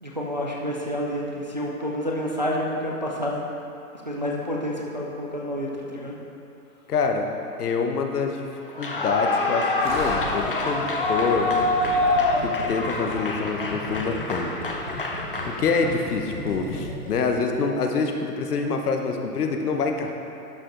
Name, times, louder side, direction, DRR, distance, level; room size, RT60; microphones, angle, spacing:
voice 1, 0.0-3.4 4.1-6.2, equal, 30° right, -2 dB, 0.4 m, -29 dB
voice 2, 6.9-7.3 7.6-8.5 8.8-11.6 12.4-14.5 15.4-20.1, left 4 dB, 75° left, 4 dB, 1.0 m, -26 dB
Clapping / Cheering / Applause, 8.7-16.1, left 2 dB, 40° left, 0.4 m, -26 dB
Gurgling, 9.8-17.4 17.6-17.7, equal, 15° right, 0.9 m, -36 dB
11.5 x 5.0 x 3.8 m, 2.7 s
hypercardioid pair, 170°, 46 cm